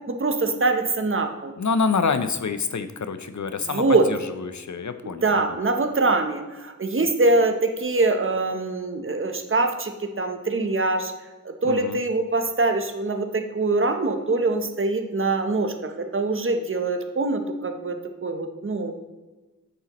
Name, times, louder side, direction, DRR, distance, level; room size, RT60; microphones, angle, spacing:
voice 1, 0.1-1.5 3.7-4.1 5.0-11.1 11.4-18.9, right 3 dB, 35° right, 5 dB, 0.9 m, -24 dB
voice 2, 1.6-5.3 11.6-12.0, left 5 dB, 55° left, 10 dB, 0.6 m, -27 dB
9.2 x 6.8 x 3.0 m, 1.2 s
wide cardioid pair, 70°, 35 cm